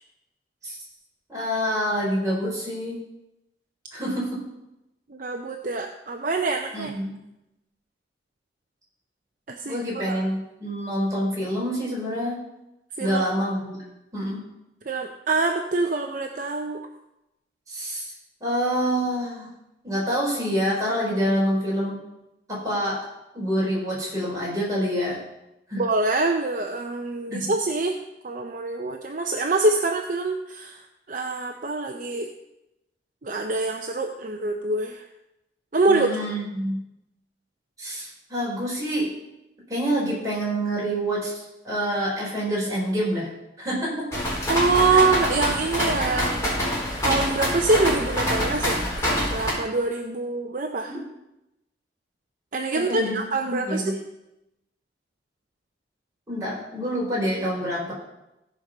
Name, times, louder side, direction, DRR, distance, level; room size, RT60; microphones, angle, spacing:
voice 1, 1.3-3.0 3.9-4.4 6.7-7.2 9.6-12.4 13.0-13.8 14.1-14.4 17.7-18.1 18.4-19.5 19.8-22.0 22.5-23.0 23.3-25.2 25.7-25.8 27.3-27.5 35.9-36.8 37.8-39.1 39.7-43.3 43.6-44.1 44.9-45.0 50.9-51.0 52.7-53.2 53.4-53.9 56.3-57.9, equal, 20° right, -6 dB, 4.8 m, -27 dB
voice 2, 5.1-6.9 9.5-10.2 13.0-13.2 14.9-16.8 25.8-28.0 28.2-32.3 33.2-35.0 35.7-36.1 44.5-46.6 47.0-50.9 52.5-54.0, right 3 dB, 45° right, 3 dB, 0.7 m, -25 dB
sound 1, 44.1-49.5, equal, 15° left, 4.4 m, -26 dB
16.0 x 5.3 x 5.5 m, 0.92 s
head